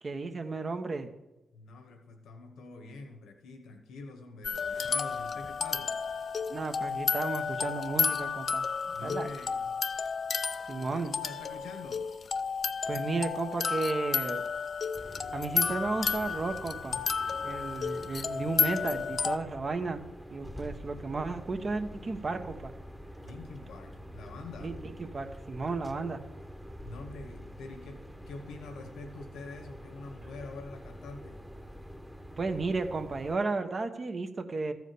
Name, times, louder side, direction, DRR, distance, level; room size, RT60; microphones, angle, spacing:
voice 1, 0.0-1.1 6.5-8.6 9.0-9.3 10.7-11.1 12.9-14.4 15.3-17.0 17.4-20.0 20.3-22.7 24.6-26.2 32.4-34.7, right 3 dB, 50° right, 7 dB, 1.1 m, -33 dB
voice 2, 1.5-6.0 8.8-9.8 10.8-12.1 23.2-24.8 26.8-31.4, left 3 dB, 85° left, 5 dB, 1.4 m, -46 dB
sound 1, 4.4-19.4, left 6 dB, 60° left, 0.5 m, -32 dB
sound 2, 14.9-33.4, equal, 5° right, 1.1 m, -46 dB
13.5 x 4.9 x 6.8 m, 0.99 s
supercardioid pair, 50°, 0 cm